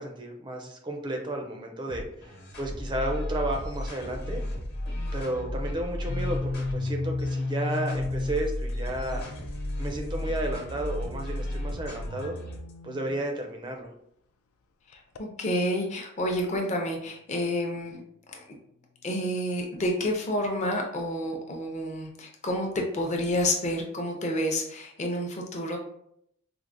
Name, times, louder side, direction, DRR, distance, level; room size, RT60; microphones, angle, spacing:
voice 1, 0.0-4.4 5.1-9.2 9.8-12.4 12.8-13.9, right 1 dB, 20° right, 3 dB, 0.4 m, -33 dB
sound 1, 1.9-12.7, left 1 dB, 50° left, 1.1 m, -34 dB
sound 2, 4.2-4.5 5.0-5.6 6.1-8.5 9.1-13.1 14.9-15.2, left 3 dB, 85° left, 0.4 m, -35 dB
voice 2, 14.9-18.0 18.3-18.5 19.0-25.8, left 1 dB, 35° left, 1 dB, 0.6 m, -29 dB
4.6 x 2.1 x 2.5 m, 0.73 s
head